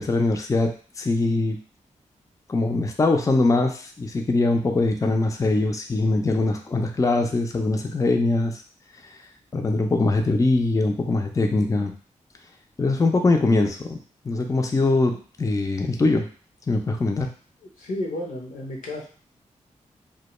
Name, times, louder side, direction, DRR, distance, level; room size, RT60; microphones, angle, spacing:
voice 1, 0.0-1.6 2.5-8.6 9.5-11.9 12.8-14.0 14.2-16.3 16.7-17.3, left 2 dB, 25° left, 3 dB, 0.4 m, -22 dB
voice 2, 17.6-19.1, left 1 dB, 90° left, -2 dB, 0.7 m, -32 dB
2.1 x 2.1 x 3.0 m, 0.41 s
cardioid pair, 55°, 13 cm